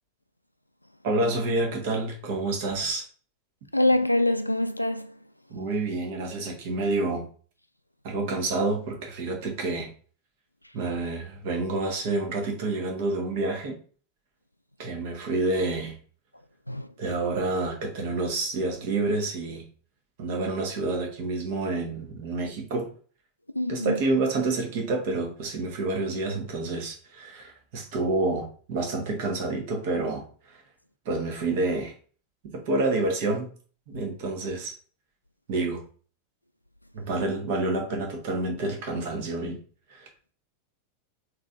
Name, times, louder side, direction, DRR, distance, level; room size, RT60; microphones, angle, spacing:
voice 1, 1.0-3.0 5.5-7.3 8.0-9.9 10.7-13.8 14.8-16.0 17.0-19.7 20.2-22.9 23.7-30.6 31.0-31.9 32.4-33.5 33.9-34.7 35.5-35.8 36.9-39.6 39.9-40.1, right 2 dB, 50° right, 1.4 m, -28 dB
voice 2, 3.7-5.1 16.7-16.9 23.5-24.0, left 1 dB, 90° left, 0.3 m, -24 dB
3.9 x 3.0 x 3.7 m
figure-of-eight pair, 90°, 0 cm